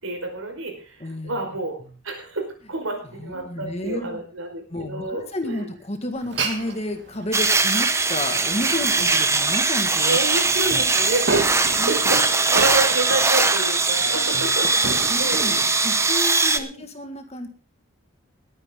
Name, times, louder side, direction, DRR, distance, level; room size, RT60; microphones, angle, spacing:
voice 1, 0.0-1.8 2.0-5.7 8.5-9.0 10.0-14.7 15.2-15.6 15.9-16.0 16.6-16.8, right 2 dB, 75° right, 3 dB, 5.0 m, -29 dB
voice 2, 1.0-1.4 1.8-1.9 3.1-4.2 4.7-10.2 10.5-10.6 11.8-11.9 15.1-15.6 15.8-17.5, left 1 dB, 30° left, 6 dB, 1.8 m, -31 dB
Glass, 6.2-16.1, right 3 dB, 55° right, 2.0 m, -32 dB
sound 1, 7.3-16.6, right 3 dB, 15° right, 0.8 m, -21 dB
19.5 x 9.7 x 3.8 m, 0.37 s
head